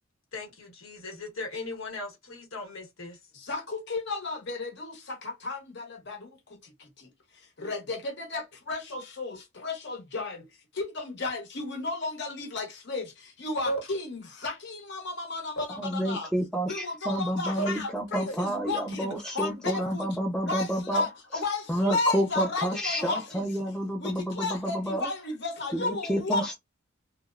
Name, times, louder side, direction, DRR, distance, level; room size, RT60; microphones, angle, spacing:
voice 1, 0.3-3.2 13.6-13.8 15.6-15.7 17.6-17.7 18.3-18.4, equal, 80° left, 1.1 m, -36 dB
voice 2, 3.3-10.5 10.7-16.3 16.7-20.1 20.4-23.6 24.0-26.5, left 3 dB, 55° left, 0.9 m, -34 dB
voice 3, 15.8-21.1 21.7-25.1 25.7-26.5, equal, 5° left, 0.3 m, -29 dB
2.8 x 2.0 x 2.3 m
head